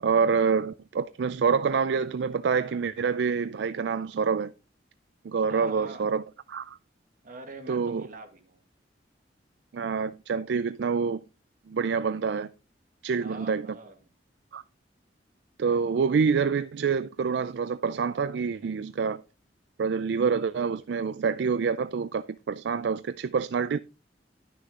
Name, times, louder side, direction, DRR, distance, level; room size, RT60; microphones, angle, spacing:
voice 1, 0.0-4.5 5.2-6.2 6.5-6.8 7.7-8.1 9.7-11.2 11.7-12.5 13.0-13.6 14.5-14.6 15.6-19.2 19.8-23.8, right 5 dB, 70° right, 0.4 m, -27 dB
voice 2, 5.5-6.2 7.2-8.7 13.2-14.0, right 2 dB, 50° right, 1.8 m, -44 dB
11.0 x 6.6 x 3.7 m
head